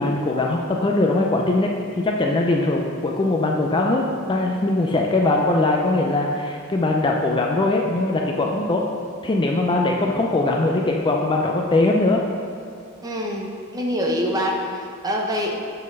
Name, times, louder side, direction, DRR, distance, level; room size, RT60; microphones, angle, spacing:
voice 1, 0.0-4.0 4.3-8.8 9.2-12.2, left 2 dB, 20° left, 0 dB, 0.4 m, -21 dB
voice 2, 13.0-15.6, equal, 15° right, 0 dB, 0.8 m, -25 dB
7.4 x 4.0 x 5.4 m, 2.4 s
head